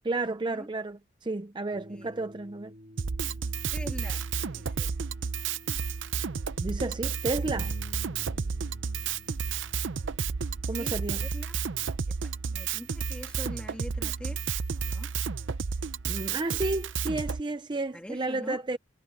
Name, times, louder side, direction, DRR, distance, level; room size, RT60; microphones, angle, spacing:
voice 1, 0.0-2.7 6.6-7.7 10.7-11.3 16.1-18.8, right 2 dB, 25° right, 0.5 m, -32 dB
sound 1, 1.7-17.5, equal, 40° right, 3.3 m, -56 dB
Drum kit, 3.0-17.4, right 6 dB, 70° right, 0.6 m, -32 dB
voice 2, 3.7-5.0 10.7-11.6 12.1-14.4 14.7-15.1 17.9-18.6, equal, 5° left, 1.8 m, -44 dB
Bass guitar, 7.4-13.7, left 2 dB, 45° left, 0.9 m, -51 dB
head